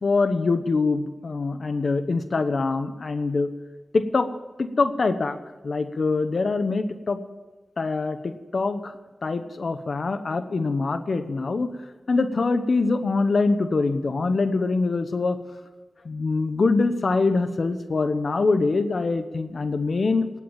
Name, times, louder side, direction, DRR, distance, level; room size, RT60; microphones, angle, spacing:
voice 1, 0.0-3.5 3.9-4.3 4.6-5.4 5.6-7.2 7.8-8.9 9.2-11.7 12.1-15.4 16.0-20.3, left 3 dB, 60° left, 10 dB, 1.0 m, -24 dB
18.0 x 8.4 x 7.2 m, 1.2 s
wide cardioid pair, 85°, 0 cm